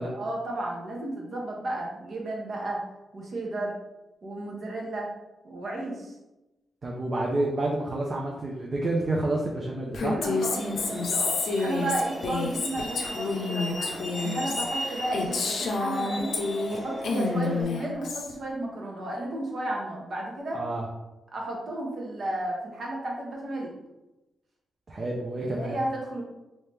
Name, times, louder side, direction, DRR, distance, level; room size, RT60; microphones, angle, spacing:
voice 1, 0.1-2.8 3.1-3.7 4.2-5.1 5.4-6.1 10.1-16.3 16.7-20.6 21.3-23.7 25.4-26.2, right 1 dB, 60° right, -2 dB, 1.0 m, -33 dB
voice 2, 6.8-10.2 20.5-20.9 24.9-25.7, right 2 dB, 40° right, -2 dB, 0.5 m, -29 dB
Female speech woman speaking, 9.9-16.8 17.0-18.3, left 3 dB, 75° left, 0.5 m, -29 dB
Truck, 10.2-17.6, equal, ahead, 0.9 m, -38 dB
3.2 x 2.8 x 3.3 m, 1.0 s
cardioid pair, 90°, 0 cm